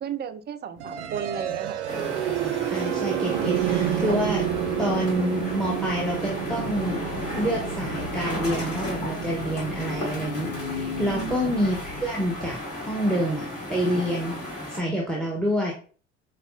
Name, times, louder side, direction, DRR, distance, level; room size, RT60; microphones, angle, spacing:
voice 1, 0.0-1.8 11.0-11.4, right 8 dB, 30° right, 11 dB, 0.4 m, -34 dB
sound 1, 0.8-12.7, right 11 dB, 80° right, 0.5 m, -30 dB
sound 2, 1.9-14.8, left 1 dB, 45° left, 1.7 m, -34 dB
voice 2, 2.7-4.5 4.8-7.0 7.3-13.4 13.7-14.3 14.7-15.7, equal, ahead, -2 dB, 0.8 m, -27 dB
sound 3, 3.2-12.5, left 5 dB, 85° left, 0.6 m, -38 dB
5.0 x 2.3 x 2.4 m, 0.39 s
figure-of-eight pair, 55°, 35 cm